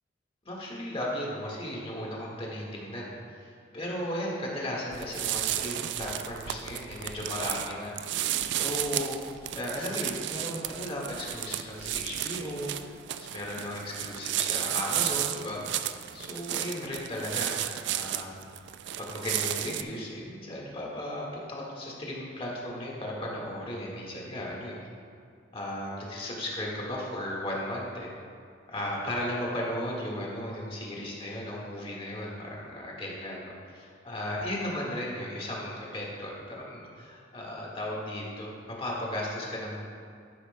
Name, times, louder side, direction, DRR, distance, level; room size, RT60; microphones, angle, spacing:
voice 1, 0.4-7.9 8.5-9.2 9.5-12.7 13.2-17.5 17.8-18.4 19.0-24.7 25.5-28.1 28.7-38.5 38.8-39.8, left 1 dB, 30° left, -3 dB, 1.6 m, -35 dB
sound 1, 4.9-19.8, right 12 dB, 60° right, 0.3 m, -33 dB
12.5 x 9.2 x 2.2 m, 2.3 s
head